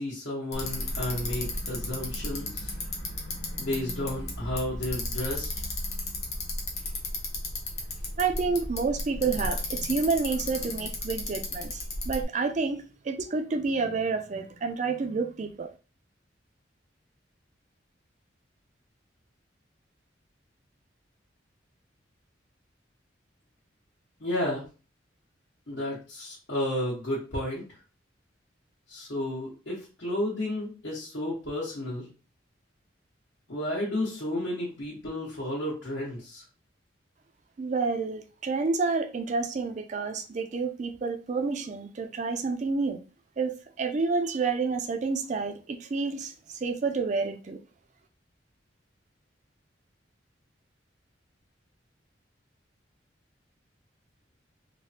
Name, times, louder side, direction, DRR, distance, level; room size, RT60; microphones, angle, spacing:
voice 1, 0.0-2.7 3.6-5.5 24.2-24.6 25.7-27.6 28.9-32.1 33.5-36.4, left 1 dB, 70° left, 1.0 m, -32 dB
Bicycle, 0.5-12.2, left 2 dB, 35° left, 0.7 m, -34 dB
voice 2, 8.2-15.7 37.6-43.0 43.4-47.6, right 4 dB, 40° right, 0.4 m, -29 dB
3.2 x 2.1 x 2.7 m
head